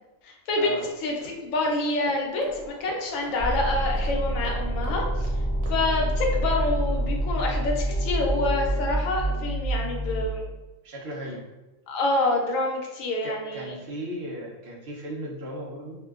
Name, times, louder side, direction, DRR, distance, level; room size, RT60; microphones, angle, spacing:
voice 1, 0.2-0.8 1.0-5.3 5.7-10.4 11.9-13.7, left 2 dB, 75° left, 0 dB, 1.0 m, -27 dB
sound 1, 0.8-5.8, right 2 dB, 85° right, 1.0 m, -46 dB
sound 2, 2.5-8.9, left 1 dB, 50° left, 0.3 m, -45 dB
sound 3, 3.4-10.2, right 1 dB, 30° left, 1.1 m, -27 dB
voice 2, 10.8-11.4 13.2-16.0, equal, 60° right, -3 dB, 0.7 m, -35 dB
2.5 x 2.2 x 2.3 m, 1.0 s
omnidirectional pair, 1.4 m